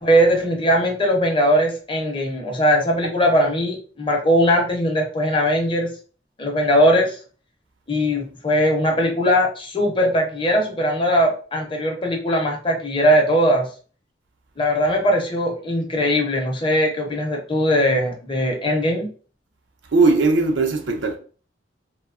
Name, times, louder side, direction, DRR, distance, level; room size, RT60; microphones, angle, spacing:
voice 1, 0.0-5.9 6.4-7.2 7.9-13.7 14.6-19.1, equal, 30° left, 0.6 m, -20 dB
voice 2, 19.9-21.2, right 3 dB, 80° right, 0.5 m, -18 dB
2.7 x 2.2 x 2.4 m
head